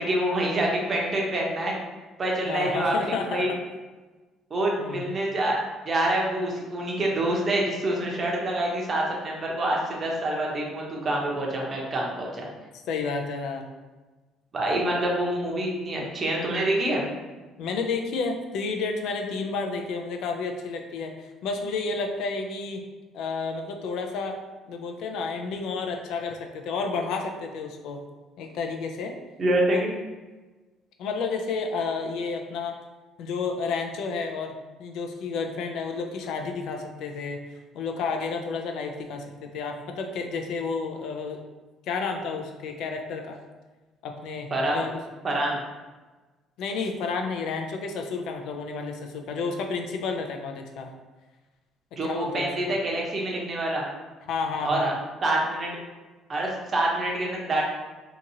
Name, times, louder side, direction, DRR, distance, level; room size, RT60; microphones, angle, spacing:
voice 1, 0.0-1.8 2.2-3.5 4.5-5.6 5.8-12.5 14.5-17.0 29.4-29.9 44.5-44.8 45.2-45.6 51.9-53.9 54.6-54.9 55.2-55.8 56.3-57.6, right 1 dB, 40° right, -2 dB, 0.8 m, -26 dB
voice 2, 2.4-3.6 4.8-5.1 12.9-13.7 17.6-22.8 23.1-24.4 24.7-28.0 28.4-29.2 29.7-29.8 31.0-32.7 33.2-37.4 37.7-41.4 41.9-43.4 44.0-45.0 46.6-50.9 52.0-52.7 54.3-54.9, left 4 dB, 75° left, 4 dB, 0.4 m, -31 dB
2.8 x 2.5 x 2.7 m, 1.2 s
supercardioid pair, 75°, 0 cm